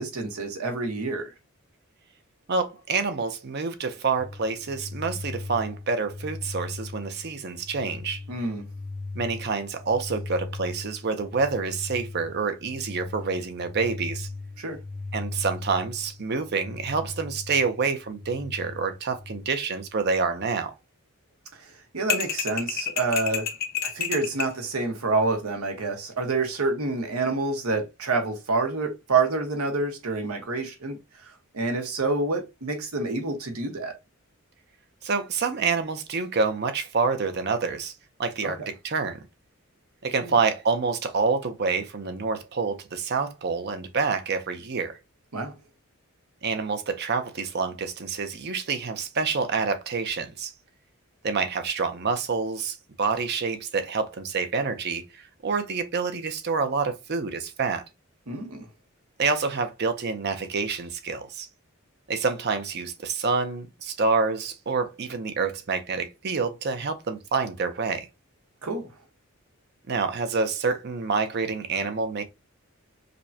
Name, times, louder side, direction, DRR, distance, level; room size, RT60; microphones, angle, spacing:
voice 1, 0.0-1.3 8.3-8.6 14.6-14.8 21.6-23.5 23.8-31.0 31.5-33.9 38.4-38.5 40.2-40.3 45.3-45.5 58.3-58.7 68.6-68.9, right 3 dB, 85° right, 1.1 m, -27 dB
voice 2, 2.5-8.2 9.1-14.3 15.1-20.7 35.0-37.9 38.2-39.2 40.0-45.0 46.4-50.5 51.2-57.8 59.2-61.5 62.1-68.1 69.9-72.2, right 4 dB, 50° right, 0.6 m, -27 dB
sound 1, 4.2-19.4, left 3 dB, 10° left, 0.4 m, -39 dB
sound 2, 22.1-24.6, left 8 dB, 45° left, 0.6 m, -29 dB
5.1 x 2.2 x 2.7 m
head